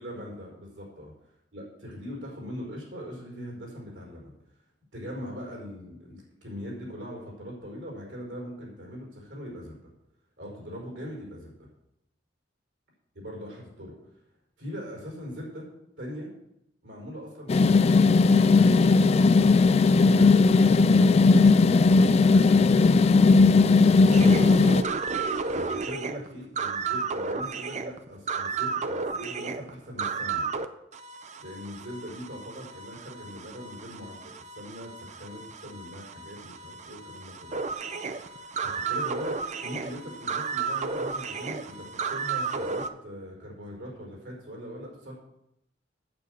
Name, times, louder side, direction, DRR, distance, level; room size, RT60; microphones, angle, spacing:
voice 1, 0.0-1.1 1.5-4.3 4.9-9.8 10.4-11.7 13.1-14.0 14.6-15.7 16.0-16.3 16.8-18.1 19.9-23.2 25.5-30.5 31.4-37.6 38.3-39.3 39.6-45.1, equal, 70° right, -2 dB, 4.6 m, -41 dB
sound 1, 17.5-24.8, left 4 dB, 35° left, 0.3 m, -18 dB
sound 2, 24.1-30.7 30.9-42.9, right 5 dB, 40° right, 0.6 m, -33 dB
9.0 x 8.2 x 6.4 m, 0.83 s
head